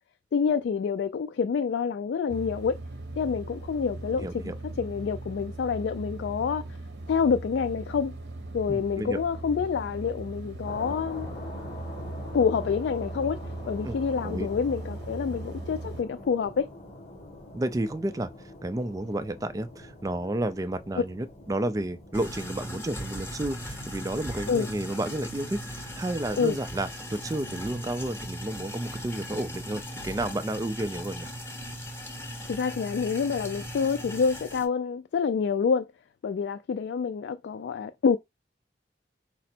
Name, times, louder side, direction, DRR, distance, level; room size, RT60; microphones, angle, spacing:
voice 1, 0.3-2.8 3.2-6.7 7.1-8.2 8.5-11.3 12.3-13.4 13.7-16.7 24.5-24.7 26.4-26.6 32.5-35.9 36.2-38.2, left 6 dB, 75° left, 0.3 m, -27 dB
sound 1, 2.3-16.0, right 2 dB, 75° right, 0.7 m, -39 dB
voice 2, 4.1-4.5 8.7-9.2 13.8-14.0 14.2-14.5 17.5-18.3 18.6-31.3, right 1 dB, 20° right, 0.3 m, -31 dB
sound 2, 10.6-29.9, left 1 dB, 40° left, 1.7 m, -46 dB
sound 3, 22.1-34.6, equal, 15° left, 0.9 m, -38 dB
5.0 x 2.0 x 4.3 m
head